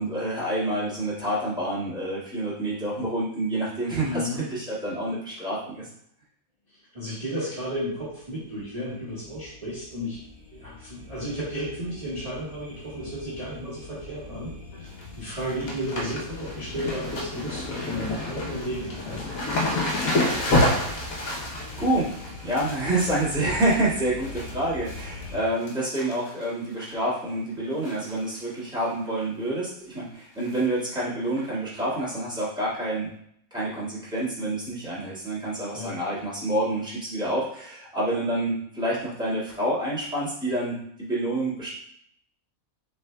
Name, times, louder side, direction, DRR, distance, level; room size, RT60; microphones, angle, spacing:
voice 1, 0.0-5.9 21.8-22.1 22.4-33.1 33.5-41.7, right 1 dB, 5° right, -10 dB, 1.8 m, -28 dB
voice 2, 4.0-4.5 6.9-10.2 10.5-14.5 14.8-14.9 15.2-19.4 35.7-36.0, equal, 25° right, -11 dB, 1.4 m, -33 dB
sound 1, 7.6-25.4, left 3 dB, 55° left, 2.3 m, -43 dB
sound 2, 14.7-15.0 15.3-24.5 24.9-25.3 25.6-26.4 26.8-26.9 27.8-28.1 28.4-28.5 28.8-28.9 30.5-30.6 31.4-31.5, left 1 dB, 75° left, 1.4 m, -29 dB
6.6 x 3.5 x 2.3 m, 0.70 s
omnidirectional pair, 1.5 m